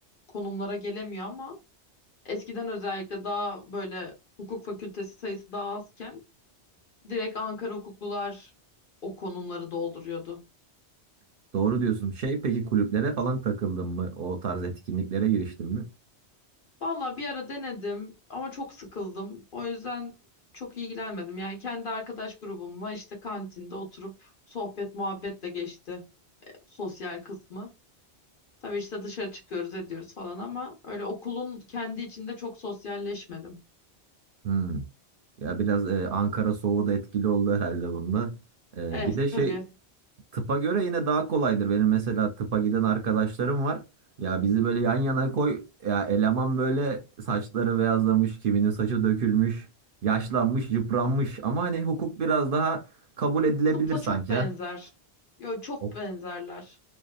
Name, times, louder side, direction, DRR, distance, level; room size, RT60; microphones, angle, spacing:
voice 1, 0.3-1.6 2.2-6.2 7.0-8.5 9.0-10.4 16.8-20.1 20.5-26.0 26.7-27.7 28.6-33.6 38.9-39.7 53.9-54.9 55.4-56.8, left 3 dB, 55° left, 1.0 m, -35 dB
voice 2, 11.5-15.9 34.4-34.9 35.4-38.4 38.8-39.6 40.3-43.8 44.2-49.7 50.0-52.8 53.2-54.5, right 5 dB, 60° right, 0.7 m, -26 dB
2.6 x 2.3 x 2.3 m
omnidirectional pair, 1.1 m